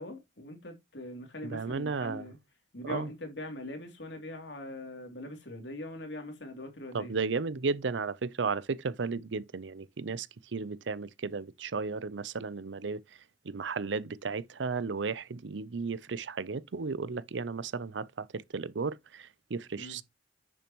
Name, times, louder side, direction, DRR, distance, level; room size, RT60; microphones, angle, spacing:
voice 1, 0.0-2.4 2.7-7.2 19.8-20.0, left 1 dB, 75° left, 2.8 m, -42 dB
voice 2, 1.4-2.2 2.8-3.1 6.9-10.3 10.5-13.0 13.4-20.0, right 4 dB, 80° right, 0.6 m, -34 dB
10.0 x 6.8 x 3.0 m
head